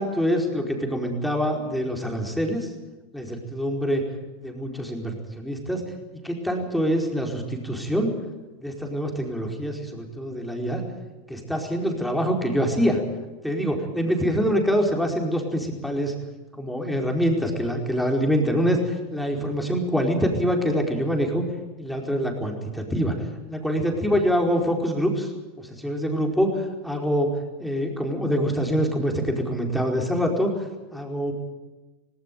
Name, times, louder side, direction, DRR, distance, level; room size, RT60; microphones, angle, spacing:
voice 1, 0.0-2.7 3.1-4.0 4.4-5.8 6.2-8.1 8.6-10.8 11.3-13.0 13.4-16.1 16.5-21.4 21.8-23.1 23.5-25.3 25.6-26.5 26.8-27.3 27.6-30.5 30.9-31.3, equal, ahead, 1 dB, 4.7 m, -25 dB
18.5 x 18.0 x 9.4 m, 1.2 s
hypercardioid pair, 95°, 0 cm